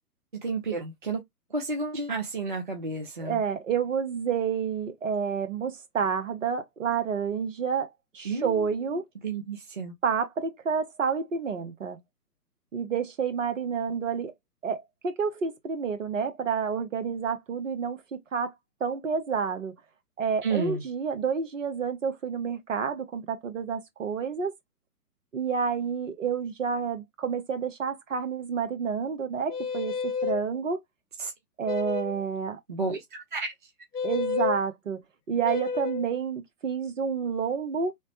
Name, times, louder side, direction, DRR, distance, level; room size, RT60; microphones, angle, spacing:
voice 1, 0.3-1.2 1.5-3.4 8.2-8.7 9.2-9.9 20.4-20.8 31.2-31.3 32.7-33.5, right 3 dB, 35° right, 0.4 m, -31 dB
voice 2, 3.2-7.9 8.1-9.0 10.0-12.0 12.7-14.3 14.6-18.5 18.8-19.7 20.2-24.5 25.3-30.8 31.6-32.6 34.0-35.0 35.3-37.9, right 6 dB, 55° right, 0.8 m, -29 dB
sound 1, 29.5-30.4 31.6-32.2 33.9-34.6 35.4-36.1, left 6 dB, 75° left, 0.7 m, -30 dB
3.1 x 2.0 x 2.8 m
figure-of-eight pair, 130°, 47 cm